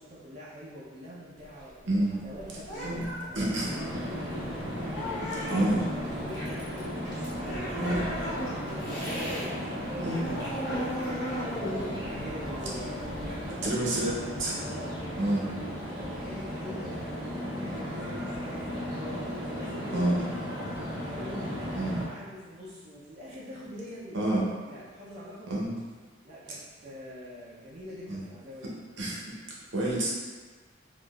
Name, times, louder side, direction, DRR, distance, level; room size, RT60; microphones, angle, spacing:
voice 1, 0.0-4.4 5.3-8.9 9.4-13.6 14.6-15.0 15.9-20.2 20.9-25.6 26.2-28.8, equal, 40° right, -8 dB, 0.5 m, -44 dB
sound 1, 1.4-9.5 9.8-13.5, equal, 80° left, 1.2 m, -37 dB
sound 2, 3.3-22.1, equal, 20° right, 1.1 m, -36 dB
voice 2, 3.4-3.7 5.5-5.8 7.8-8.1 10.0-10.3 13.6-14.6 15.2-15.5 19.9-20.2 21.7-22.0 24.1-24.4 25.5-25.7 28.1-28.2 29.0-29.2 29.7-30.1, right 1 dB, 70° right, -5 dB, 0.8 m, -28 dB
3.5 x 2.5 x 2.4 m, 1.4 s
head